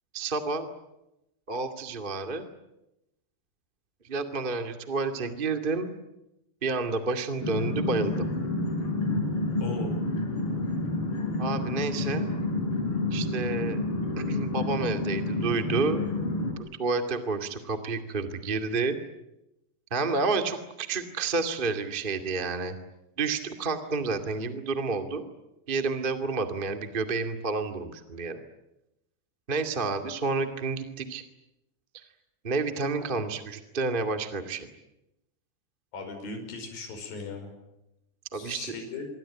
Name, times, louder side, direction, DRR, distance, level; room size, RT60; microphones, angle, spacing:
voice 1, 0.1-0.7 1.5-2.5 4.1-5.9 6.6-8.2 11.4-12.3 13.1-13.8 14.2-16.0 16.6-19.0 19.9-22.8 23.2-25.2 25.7-28.4 29.5-31.2 32.4-34.7 38.3-38.7, right 4 dB, 25° right, 6 dB, 1.1 m, -30 dB
sound 1, 7.4-16.5, left 2 dB, 30° left, 6.1 m, -29 dB
voice 2, 9.6-9.9 35.9-37.5 38.3-39.1, left 4 dB, 55° left, 5 dB, 7.0 m, -38 dB
26.5 x 23.5 x 8.8 m, 0.88 s
omnidirectional pair, 5.0 m